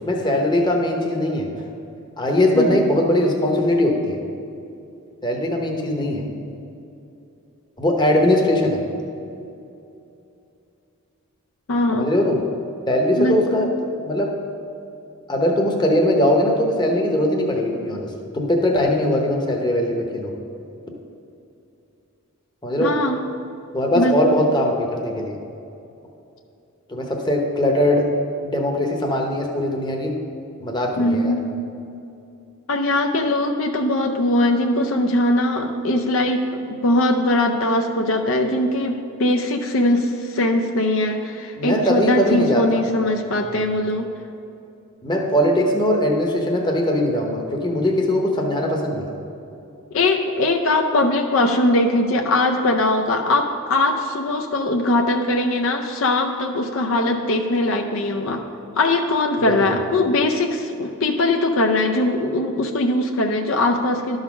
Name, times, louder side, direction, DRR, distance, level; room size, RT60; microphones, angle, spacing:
voice 1, 0.0-1.5 2.2-4.2 5.2-6.2 7.8-8.8 11.9-12.4 12.9-13.7 14.1-14.3 15.3-18.1 18.3-20.3 22.6-22.9 23.7-25.4 26.9-28.1 28.4-30.1 30.6-31.4 41.6-42.8 43.4-43.6 45.0-49.1 59.4-59.8, left 1 dB, 20° left, 1 dB, 0.9 m, -20 dB
voice 2, 11.7-12.1 13.2-13.7 22.8-23.3 23.9-24.4 31.0-31.5 32.7-44.1 49.9-58.4 58.8-64.2, left 1 dB, 60° left, 3 dB, 0.5 m, -21 dB
12.0 x 4.0 x 6.0 m, 2.7 s
head